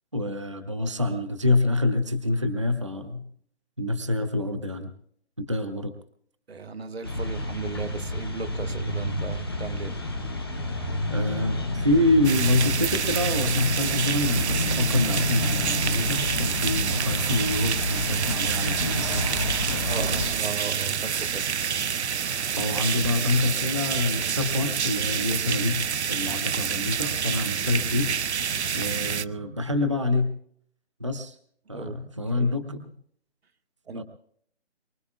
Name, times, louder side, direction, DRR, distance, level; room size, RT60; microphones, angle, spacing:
voice 1, 0.1-3.2 3.8-4.9 5.4-5.9 11.1-19.3 19.7-20.1 22.5-28.1 28.7-30.3 31.0-31.4 31.7-32.9 33.9-34.0, left 2 dB, 30° right, 0.5 m, -26 dB
voice 2, 6.5-10.0 19.8-21.6 31.7-32.0 32.3-32.6 33.9-34.0, right 5 dB, 65° right, 1.0 m, -36 dB
sound 1, 7.0-20.3, left 1 dB, 20° left, 0.7 m, -29 dB
sound 2, 12.2-29.2, right 7 dB, 80° right, 0.6 m, -28 dB
23.5 x 23.5 x 2.3 m
hypercardioid pair, 180°, 33 cm